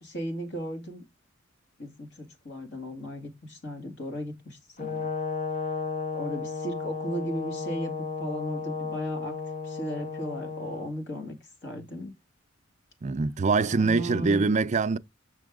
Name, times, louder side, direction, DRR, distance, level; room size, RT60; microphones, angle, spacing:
voice 1, 0.0-1.0 1.8-5.1 6.1-7.9 8.2-9.4 9.6-11.4 11.6-12.1 13.6-14.4, equal, 60° left, 2.3 m, -36 dB
Brass instrument, 4.8-10.9, left 5 dB, 40° left, 0.7 m, -34 dB
voice 2, 13.0-15.0, right 4 dB, 35° right, 0.4 m, -24 dB
6.6 x 6.0 x 3.6 m
head